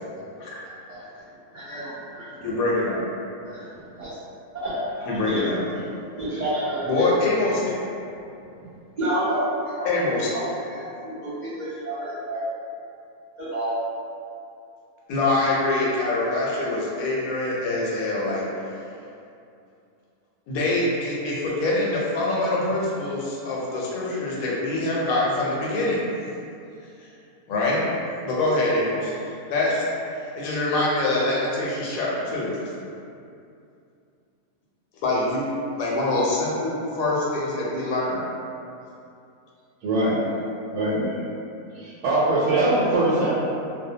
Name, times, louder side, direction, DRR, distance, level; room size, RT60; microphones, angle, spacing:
voice 1, 1.5-2.4 3.5-4.2 4.5-5.4 5.7-5.9 6.2-7.1 9.0-9.4 9.8-9.9 10.3-12.4 13.4-13.7, right 1 dB, 55° right, -14 dB, 0.4 m, -30 dB
voice 2, 2.4-3.0 5.1-5.6 6.9-7.7 9.8-10.3 15.1-18.5 20.5-26.0 27.5-27.8 28.2-29.8 30.2-32.5 35.0-35.4 35.8-38.2, left 2 dB, 70° left, -5 dB, 1.0 m, -24 dB
voice 3, 39.8-40.2 40.7-41.2 41.8-43.3, right 2 dB, 70° right, -8 dB, 1.1 m, -22 dB
2.7 x 2.0 x 2.7 m, 2.6 s
omnidirectional pair, 1.7 m